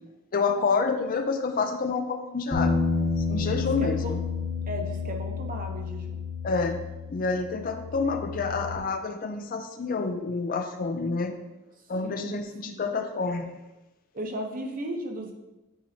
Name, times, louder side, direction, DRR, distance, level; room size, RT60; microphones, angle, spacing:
voice 1, 0.3-2.7 3.2-4.2 6.4-6.8 7.1-11.4 11.9-13.5, left 4 dB, 40° left, 7 dB, 0.4 m, -28 dB
sound 1, 2.5-8.8, left 4 dB, 15° left, 0.9 m, -30 dB
voice 2, 3.5-4.1 4.7-6.2 12.0-12.9 14.1-15.3, right 1 dB, 40° right, 3 dB, 0.8 m, -36 dB
8.8 x 4.6 x 2.7 m, 1.0 s
head